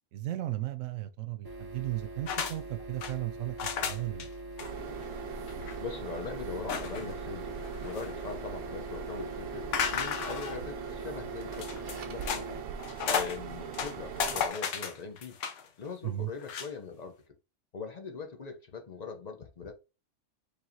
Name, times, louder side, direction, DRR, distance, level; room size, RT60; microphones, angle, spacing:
voice 1, 0.1-4.3 16.0-16.3, right 15 dB, 85° right, 0.9 m, -35 dB
sound 1, 1.4-12.6, right 1 dB, 30° right, 0.4 m, -43 dB
sound 2, 2.3-2.6 2.8-3.1 3.6-4.3 4.6-4.7 5.0-5.1 5.5-5.8 6.7-7.2 7.6-8.4 9.7-10.6 11.5-12.4 12.8-13.4 13.7-15.7 16.4-16.7, left 7 dB, 75° left, 1.0 m, -33 dB
sound 3, 4.6-14.5, right 7 dB, 60° right, 0.7 m, -41 dB
voice 2, 5.8-12.4 13.1-15.4 15.8-17.4 17.7-19.7, left 5 dB, 40° left, 0.7 m, -41 dB
4.7 x 3.3 x 2.7 m
omnidirectional pair, 1.3 m